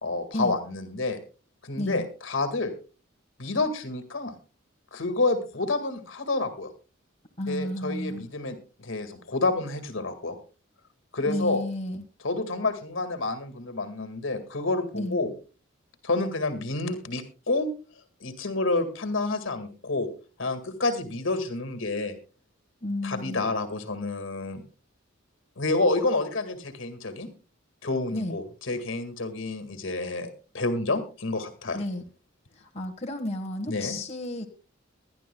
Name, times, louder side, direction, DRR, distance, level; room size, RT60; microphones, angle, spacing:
voice 1, 0.0-1.2 1.6-2.7 3.4-4.3 4.9-6.7 7.5-10.4 11.1-11.6 12.2-15.3 16.0-17.7 18.2-20.1 20.4-22.1 23.0-24.6 25.6-27.3 27.8-31.8 33.7-34.0, left 2 dB, 75° left, 8 dB, 2.0 m, -29 dB
voice 2, 1.7-2.1 7.4-8.3 11.3-12.0 14.9-15.2 22.8-23.5 28.1-28.4 31.7-32.0 32.6-34.5, left 1 dB, 35° left, 1 dB, 1.5 m, -32 dB
22.0 x 11.5 x 2.3 m, 0.34 s
head